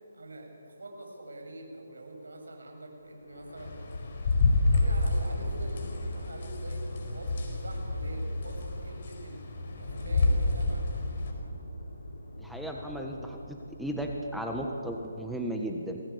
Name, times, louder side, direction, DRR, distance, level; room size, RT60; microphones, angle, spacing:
voice 1, 0.1-3.8 4.2-6.9 7.1-10.8, right 1 dB, 85° right, 2 dB, 8.0 m, -45 dB
sound 1, 3.0-15.3, left 1 dB, 70° left, 6.3 m, -46 dB
sound 2, 3.6-11.3, left 2 dB, 45° left, 4.8 m, -29 dB
voice 2, 12.4-16.0, right 1 dB, ahead, 0 dB, 1.5 m, -35 dB
27.0 x 20.0 x 8.6 m, 2.5 s
hypercardioid pair, 160°, 0 cm